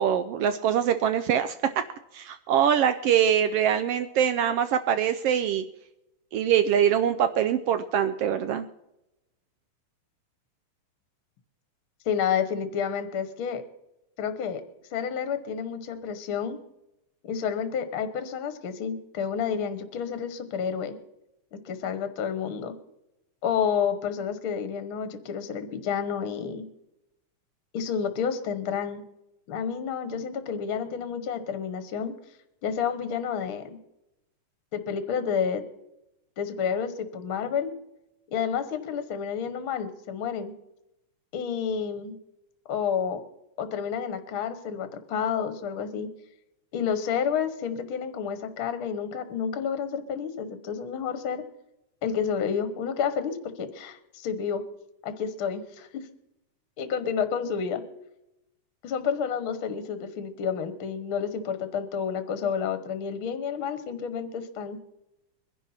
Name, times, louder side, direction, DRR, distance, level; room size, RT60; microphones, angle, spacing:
voice 1, 0.0-1.6 2.1-5.6 6.3-8.7, right 9 dB, 80° right, 10 dB, 1.4 m, -23 dB
voice 2, 12.0-13.6 14.2-14.6 14.9-16.6 17.2-21.0 21.5-22.7 23.4-26.6 27.7-29.0 29.5-32.1 32.6-33.8 34.7-35.6 36.4-37.7 38.3-40.5 41.3-42.2 42.7-43.2 43.6-46.1 46.7-51.4 52.0-54.6 55.0-56.0 56.8-57.8 58.8-64.8, left 7 dB, 55° left, 10 dB, 1.6 m, -30 dB
23.0 x 11.0 x 4.3 m, 0.89 s
omnidirectional pair, 3.4 m